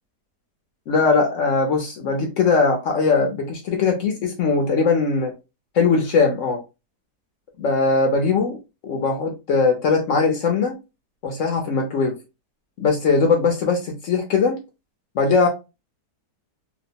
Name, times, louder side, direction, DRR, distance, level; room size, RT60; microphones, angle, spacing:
voice 1, 0.9-5.3 5.7-6.6 7.6-8.6 8.8-10.7 11.2-12.2 12.8-14.6 15.1-15.5, left 4 dB, 65° left, 2 dB, 0.8 m, -20 dB
2.9 x 2.1 x 2.6 m, 0.26 s
omnidirectional pair, 1.8 m